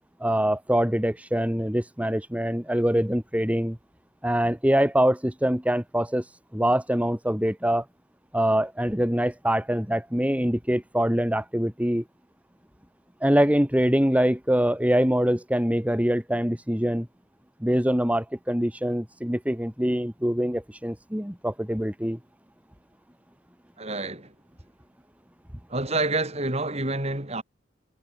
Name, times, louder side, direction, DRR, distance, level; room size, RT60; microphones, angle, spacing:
voice 1, 0.2-3.8 4.2-7.9 8.3-12.0 13.2-17.1 17.6-22.2, equal, 5° right, 1.8 m, -24 dB
voice 2, 23.8-24.3 25.7-27.4, right 2 dB, 35° right, 5.9 m, -28 dB
head